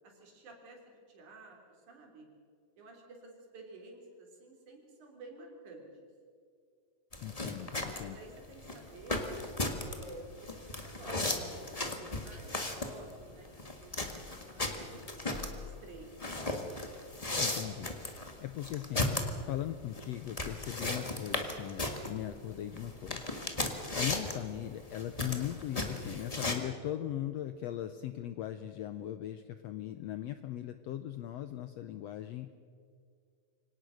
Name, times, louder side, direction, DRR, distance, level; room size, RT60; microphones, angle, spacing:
voice 1, 0.0-2.3 2.8-5.9 8.0-9.3 9.8-10.3 10.6-13.5 13.8-16.5, right 2 dB, 65° right, 1 dB, 4.9 m, -52 dB
sound 1, 7.1-26.6, left 2 dB, 25° left, 0.8 m, -36 dB
voice 2, 7.2-8.2 17.4-23.2 23.5-32.6, left 12 dB, 80° left, 10 dB, 1.5 m, -39 dB
25.0 x 18.0 x 6.4 m, 2.2 s
omnidirectional pair, 3.7 m